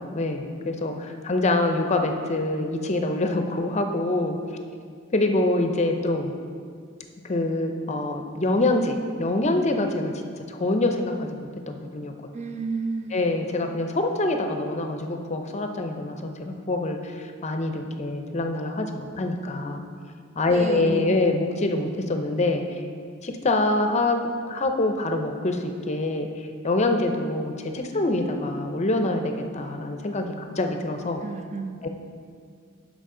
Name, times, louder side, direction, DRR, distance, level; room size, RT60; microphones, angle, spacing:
voice 1, 0.0-4.4 5.1-6.3 7.2-10.1 10.5-12.1 13.1-19.8 20.4-22.8 23.2-31.2 31.8-31.9, left 2 dB, 35° left, 5 dB, 0.6 m, -25 dB
voice 2, 12.3-13.4 20.5-21.2 31.2-31.9, right 4 dB, 30° right, 7 dB, 0.3 m, -32 dB
12.0 x 5.1 x 3.8 m, 2.1 s
head